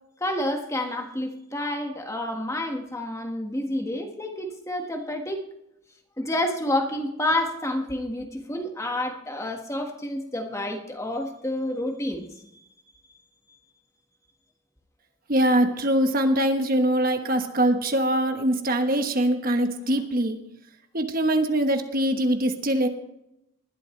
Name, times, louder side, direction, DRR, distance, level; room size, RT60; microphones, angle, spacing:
voice 1, 0.2-5.5 6.2-12.3, left 1 dB, 15° left, 4 dB, 1.6 m, -29 dB
voice 2, 15.3-20.4 20.9-22.9, right 1 dB, 40° right, 6 dB, 1.2 m, -23 dB
20.5 x 11.5 x 3.2 m, 0.82 s
head